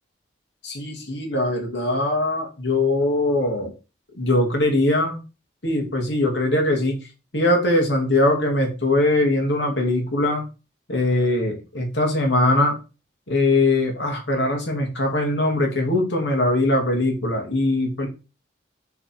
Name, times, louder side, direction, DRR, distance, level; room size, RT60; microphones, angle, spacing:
voice 1, 0.6-3.7 4.2-5.2 5.6-7.0 7.3-10.4 10.9-12.8 13.3-18.1, left 2 dB, 80° left, 2 dB, 2.4 m, -21 dB
6.9 x 4.1 x 4.5 m, 0.31 s
head